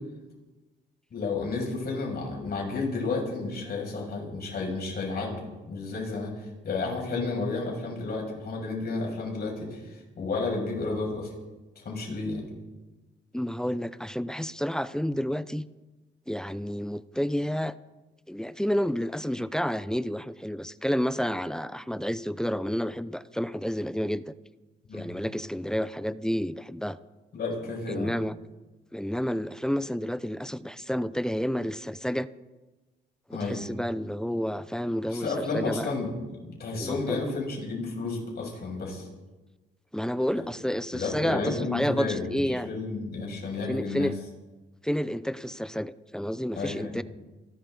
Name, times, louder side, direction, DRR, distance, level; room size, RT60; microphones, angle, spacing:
voice 1, 1.1-11.3 11.8-12.5 24.9-25.1 27.3-28.1 33.3-33.6 35.1-36.1 36.4-39.1 40.4-40.5 40.9-44.1 46.6-47.0, left 3 dB, 55° left, -1 dB, 6.8 m, -32 dB
voice 2, 13.3-15.7 16.3-17.8 18.3-24.3 24.9-27.0 27.9-28.3 28.9-32.3 33.3-35.9 36.8-37.3 39.9-42.7 43.7-44.2 44.8-47.0, equal, 5° left, 15 dB, 0.6 m, -30 dB
29.0 x 12.5 x 4.0 m, 1.2 s
cardioid pair, 90°, 20 cm